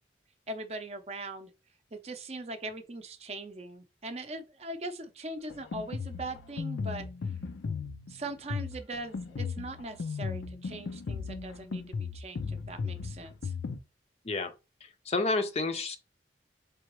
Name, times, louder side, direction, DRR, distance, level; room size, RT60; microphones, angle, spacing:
voice 1, 0.5-1.5 1.9-7.1 8.1-13.5, right 2 dB, 35° right, 0.5 m, -40 dB
Drum kit, 5.5-13.8, left 5 dB, 90° left, 0.5 m, -36 dB
voice 2, 14.8-16.0, left 3 dB, 35° left, 0.5 m, -30 dB
3.8 x 3.4 x 3.0 m
head